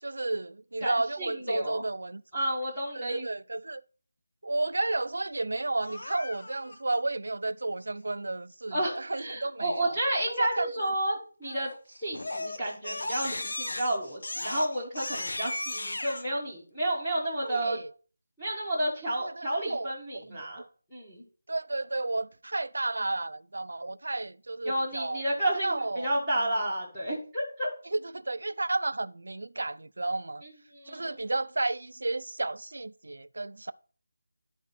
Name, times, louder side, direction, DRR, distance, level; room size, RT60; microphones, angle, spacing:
voice 1, 0.0-2.2 2.9-3.8 4.4-10.0 10.4-10.7 17.4-17.9 19.2-20.7 21.5-25.2 25.6-26.1 27.9-30.4 30.9-33.7, right 2 dB, 65° right, 0.4 m, -32 dB
voice 2, 0.8-1.8 2.3-3.3 8.7-11.7 12.0-17.8 18.4-20.6 20.9-21.2 24.7-27.7 30.4-31.2, right 1 dB, 5° left, 0.9 m, -31 dB
Crying sobbing, 5.8-6.8 11.4-11.8 12.1-16.2, left 2 dB, 55° left, 1.0 m, -36 dB
10.5 x 4.0 x 4.1 m
figure-of-eight pair, 180°, 0 cm